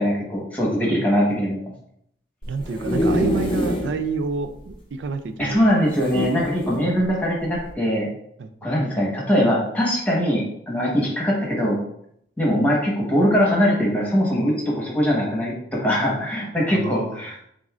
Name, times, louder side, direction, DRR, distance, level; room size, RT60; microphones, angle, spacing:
voice 1, 0.0-1.6 5.4-8.1 8.6-11.8 12.4-17.4, equal, 10° left, -4 dB, 1.1 m, -21 dB
sound 1, 2.4-3.9 4.4-4.5 4.7-4.8 5.9-6.8 7.5-7.7, left 1 dB, 30° left, 0.7 m, -25 dB
voice 2, 2.5-5.6 5.9-6.0 8.4-8.5 16.7-17.2, right 4 dB, 90° right, 8 dB, 0.4 m, -28 dB
7.2 x 2.5 x 2.4 m, 0.72 s
head